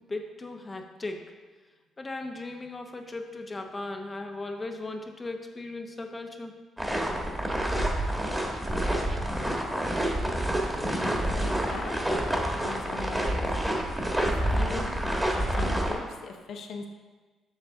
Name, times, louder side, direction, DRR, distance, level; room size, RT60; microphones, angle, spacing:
voice 1, 0.0-1.3 2.0-6.5, left 2 dB, 25° left, 3 dB, 0.8 m, -37 dB
sound 1, 6.8-16.0, right 1 dB, 10° right, 1.3 m, -28 dB
sound 2, 7.3-14.7, right 3 dB, 40° right, 0.7 m, -41 dB
voice 2, 11.3-12.2 12.6-13.9 14.2-15.0 15.3-16.9, left 5 dB, 65° left, 4 dB, 0.8 m, -40 dB
7.4 x 6.4 x 3.7 m, 1.3 s
cardioid pair, 90°, 0 cm